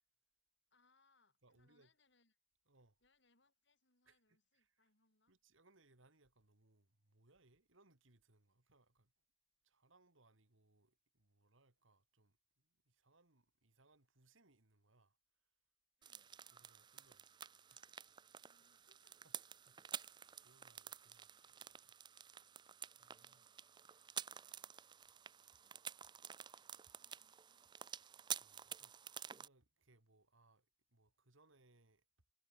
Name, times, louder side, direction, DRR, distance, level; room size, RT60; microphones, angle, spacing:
voice 1, 0.7-2.4 3.0-5.3 16.0-16.3 18.4-20.1 23.0-24.8 27.0-27.7, left 3 dB, 60° left, 6.6 m, -79 dB
voice 2, 1.4-1.9 2.7-3.0 4.1-4.9 5.3-9.1 9.6-15.5 16.5-17.4 17.7-18.2 19.2-19.3 19.7-20.0 20.4-22.0 23.0-23.4 25.0-25.1 27.9-28.0 28.3-29.0 29.2-32.1, right 2 dB, 75° right, 2.7 m, -73 dB
sound 1, 16.0-29.5, right 8 dB, 20° right, 0.4 m, -51 dB
head